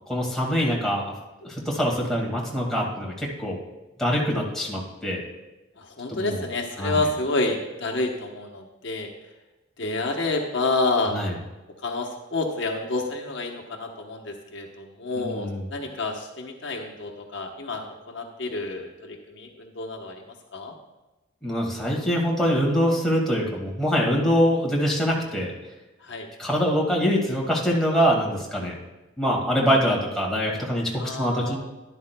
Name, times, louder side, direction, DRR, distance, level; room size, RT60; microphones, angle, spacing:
voice 1, 0.1-1.1 1.4-3.6 4.0-5.2 6.1-6.4 6.8-7.0 11.1-11.4 15.2-15.6 21.4-25.5 26.4-28.7 29.2-31.6, equal, ahead, -3 dB, 1.9 m, -24 dB
voice 2, 5.8-9.1 9.8-11.2 11.8-20.3 20.5-20.7 26.0-26.3 31.0-31.6, left 2 dB, 65° left, 2 dB, 1.0 m, -29 dB
12.5 x 11.0 x 2.2 m, 1.1 s
head